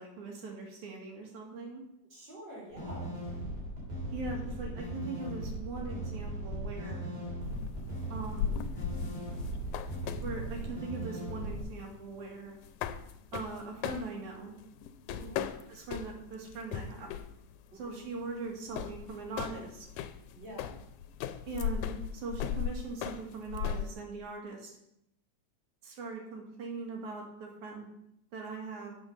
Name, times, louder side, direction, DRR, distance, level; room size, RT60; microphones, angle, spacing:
voice 1, 0.0-1.8 4.1-7.1 8.1-8.6 10.2-12.6 13.3-14.5 15.7-17.1 17.7-19.9 21.5-24.7 25.8-27.9 28.3-29.0, right 3 dB, 80° right, 0 dB, 3.4 m, -41 dB
voice 2, 2.1-3.1 15.1-15.5 17.7-18.0 20.3-20.7, right 1 dB, 35° right, -4 dB, 4.2 m, -47 dB
sound 1, 2.7-11.6, right 1 dB, 55° right, 4.5 m, -38 dB
sound 2, 7.4-23.9, left 9 dB, 90° left, 2.1 m, -38 dB
8.4 x 6.5 x 6.5 m, 0.79 s
omnidirectional pair, 3.3 m